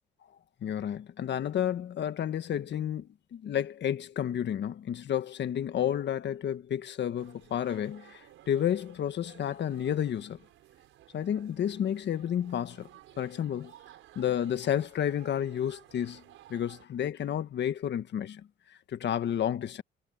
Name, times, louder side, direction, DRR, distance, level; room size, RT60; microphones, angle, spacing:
voice 1, 0.6-10.4 11.1-12.9 13.2-13.7 14.1-16.2 16.5-19.8, left 10 dB, 65° left, 1.6 m, -31 dB
sound 1, 7.1-16.9, right 13 dB, 85° right, 6.2 m, -56 dB
cardioid pair, 90°, 20 cm